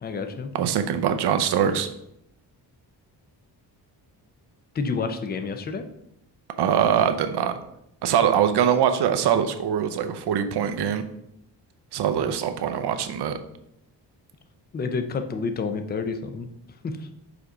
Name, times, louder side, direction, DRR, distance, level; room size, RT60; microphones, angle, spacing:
voice 1, 0.0-0.5 4.7-5.8 14.7-16.5 16.8-17.1, left 4 dB, 25° left, 7 dB, 0.4 m, -29 dB
voice 2, 0.5-1.9 6.6-7.5 8.0-11.0 11.9-13.3, right 8 dB, 70° right, 8 dB, 0.7 m, -23 dB
5.1 x 4.8 x 3.8 m, 0.80 s
wide cardioid pair, 150°, 42 cm